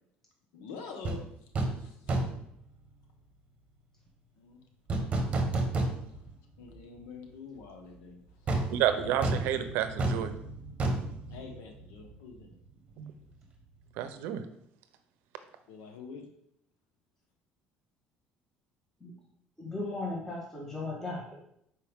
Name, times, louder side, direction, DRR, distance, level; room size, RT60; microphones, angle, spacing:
voice 1, 0.5-2.1 4.4-4.6 5.1-5.4 6.1-6.3 6.6-8.8 11.3-12.5 15.7-16.3, left 5 dB, 90° left, 3 dB, 1.1 m, -47 dB
sound 1, 1.0-1.2 1.5-1.8 2.1-2.5 4.9-6.3 6.7-6.8 8.5-12.1 12.4-12.5, right 2 dB, 35° right, 1.2 m, -31 dB
voice 2, 8.7-10.3 13.0-13.1 14.0-14.4, right 10 dB, 80° right, 10 dB, 0.6 m, -30 dB
voice 3, 19.6-21.4, left 2 dB, 10° left, -3 dB, 1.6 m, -36 dB
5.8 x 4.7 x 3.6 m, 0.74 s
cardioid pair, 115°, 4 cm